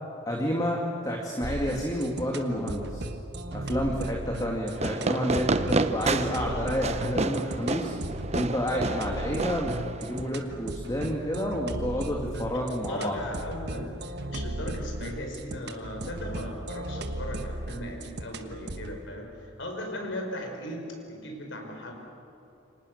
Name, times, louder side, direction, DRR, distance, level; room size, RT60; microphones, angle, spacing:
voice 1, 0.3-3.0 3.5-7.9 8.3-9.7 10.0-13.2, equal, 20° left, 0 dB, 2.3 m, -29 dB
sound 1, 1.4-19.0, right 1 dB, 60° right, 1.5 m, -36 dB
Fireworks, 4.7-10.3, right 3 dB, 35° right, 0.9 m, -30 dB
voice 2, 12.9-21.9, left 1 dB, 70° left, 2 dB, 5.4 m, -37 dB
29.0 x 25.5 x 6.7 m, 2.8 s
head